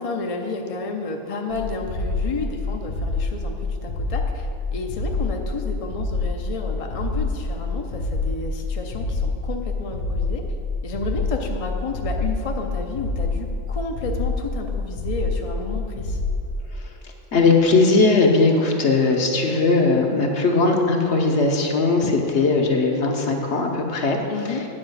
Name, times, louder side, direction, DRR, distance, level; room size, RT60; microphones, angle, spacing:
voice 1, 0.0-10.4 10.8-16.3 24.3-24.7, left 3 dB, 35° left, 2 dB, 0.6 m, -31 dB
sound 1, 1.5-16.5, left 3 dB, 85° left, 1.2 m, -27 dB
voice 2, 17.3-24.2 24.5-24.6, left 3 dB, 60° left, 2 dB, 1.2 m, -19 dB
9.5 x 4.9 x 7.9 m, 2.9 s
omnidirectional pair, 1.4 m